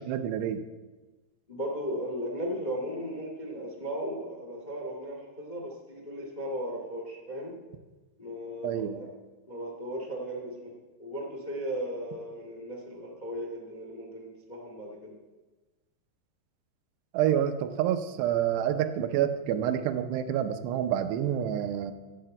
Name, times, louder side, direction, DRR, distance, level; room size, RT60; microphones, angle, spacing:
voice 1, 0.1-0.6 8.6-9.0 17.1-21.9, right 10 dB, 80° right, 9 dB, 2.8 m, -28 dB
voice 2, 1.5-7.6 8.2-9.1 9.5-10.7 11.0-15.1, equal, 55° left, -1 dB, 0.4 m, -36 dB
10.5 x 9.8 x 7.8 m, 1.2 s
omnidirectional pair, 5.0 m